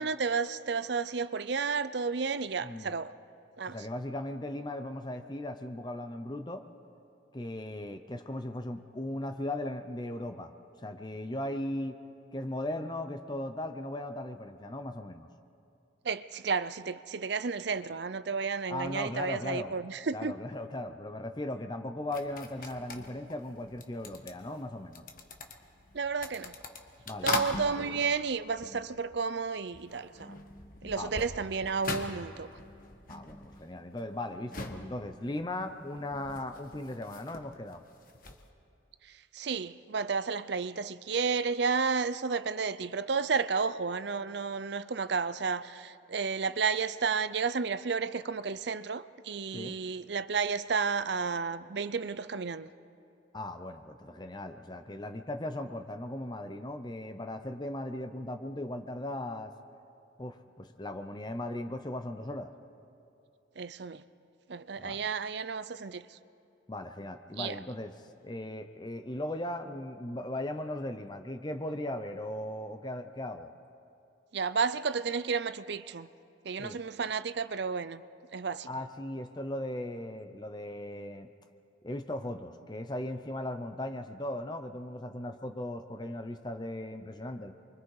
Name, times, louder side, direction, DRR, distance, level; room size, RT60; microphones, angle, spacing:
voice 1, 0.0-3.1 3.6-3.8 16.0-20.3 25.9-26.5 27.2-30.4 30.8-32.5 39.0-52.7 63.6-64.0 64.5-66.2 67.4-67.6 74.3-76.1 76.4-78.0 78.3-78.7, right 5 dB, 60° right, 0.6 m, -32 dB
voice 2, 3.7-6.6 7.3-10.5 10.8-12.0 12.3-15.3 18.7-19.8 20.1-25.0 27.1-27.4 27.8-28.0 31.0-31.3 33.1-37.8 49.5-49.8 53.3-59.5 60.2-62.5 64.8-65.0 66.7-73.5 76.6-76.8 78.7-81.3 81.8-87.5, left 1 dB, 20° left, 0.7 m, -38 dB
sound 1, 22.1-29.4 29.7-38.5, left 2 dB, 45° left, 1.4 m, -41 dB
29.0 x 24.0 x 4.8 m
head